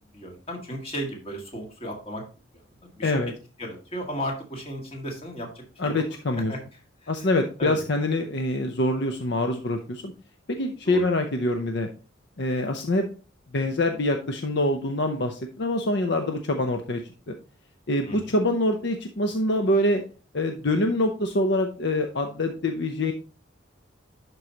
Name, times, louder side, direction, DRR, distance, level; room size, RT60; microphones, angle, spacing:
voice 1, 0.1-2.2 3.0-3.2 3.6-6.0 6.3-6.6 7.0-7.3 7.6-7.8 10.9-11.0 18.1-18.3, equal, 30° left, 1 dB, 1.9 m, -35 dB
voice 2, 3.0-3.3 5.8-6.5 7.1-10.1 10.5-11.9 12.4-13.1 13.5-17.0 17.3-17.4 17.9-20.0 20.3-23.1, left 1 dB, 60° left, 5 dB, 0.7 m, -25 dB
11.5 x 4.7 x 2.9 m, 0.36 s
head